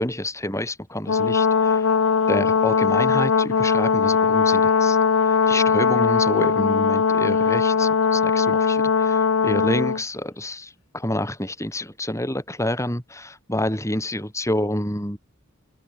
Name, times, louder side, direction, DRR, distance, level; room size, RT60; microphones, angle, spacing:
voice 1, 0.0-1.9 2.3-5.0 5.2-15.2, left 1 dB, 15° left, 7.8 m, -28 dB
Brass instrument, 1.1-10.0, left 5 dB, 85° left, 0.7 m, -20 dB
open air
head